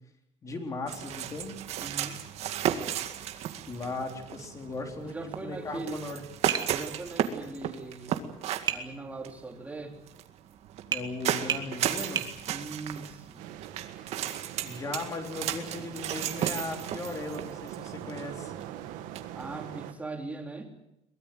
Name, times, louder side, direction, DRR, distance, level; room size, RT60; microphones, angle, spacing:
voice 1, 0.4-1.6 3.7-6.2 10.9-12.2 14.6-18.5, left 3 dB, 25° left, 4 dB, 3.8 m, -37 dB
sound 1, 0.9-19.6, right 11 dB, 55° right, 2.1 m, -35 dB
voice 2, 1.8-2.2 5.0-6.0 6.7-8.3 8.7-10.0 12.5-13.5 19.3-20.7, right 3 dB, 10° right, 4 dB, 3.2 m, -40 dB
Tap, 6.5-6.7 8.7-8.9 10.9-11.1 11.5-11.7 12.2-12.3, right 8 dB, 30° right, 1.8 m, -30 dB
sound 2, 13.4-19.9, right 12 dB, 90° right, 2.5 m, -42 dB
23.0 x 21.0 x 7.9 m, 0.85 s
cardioid pair, 165°, 13 cm